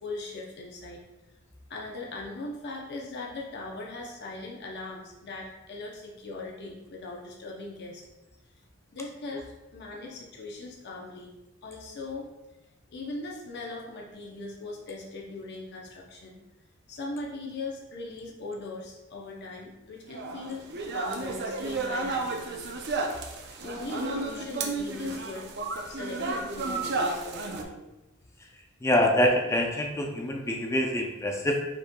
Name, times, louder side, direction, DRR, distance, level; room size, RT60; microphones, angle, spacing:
voice 1, 0.0-1.0 1.7-8.0 8.9-11.3 11.6-12.3 12.9-16.4 16.9-22.9 23.6-25.5 25.9-27.8, left 2 dB, 50° left, -1 dB, 0.7 m, -39 dB
building Sharamentsa Equador, 20.1-27.6, right 3 dB, 50° right, 0.5 m, -32 dB
voice 2, 28.8-31.7, left 1 dB, 15° left, 2 dB, 0.4 m, -25 dB
5.3 x 4.1 x 2.2 m, 1.0 s
head